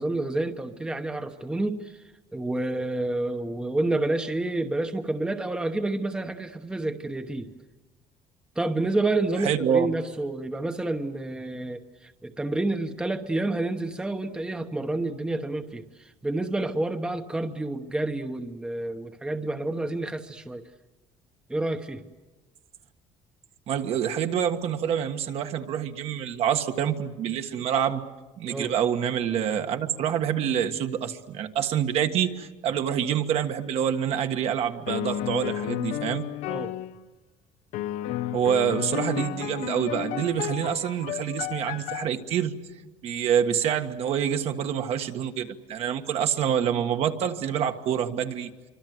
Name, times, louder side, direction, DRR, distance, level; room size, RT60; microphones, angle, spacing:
voice 1, 0.0-1.9 2.3-7.5 8.6-20.6 21.5-22.0 28.5-28.7 36.5-36.7, right 2 dB, 5° right, 7 dB, 0.9 m, -29 dB
voice 2, 9.4-9.9 23.7-28.0 28.4-36.3 38.3-42.5 43.0-48.5, right 9 dB, 55° right, 6 dB, 1.5 m, -26 dB
sound 1, 34.9-37.0 37.7-42.1, left 13 dB, 85° left, 0.8 m, -32 dB
26.0 x 25.0 x 7.9 m, 1.2 s
cardioid pair, 165°, 12 cm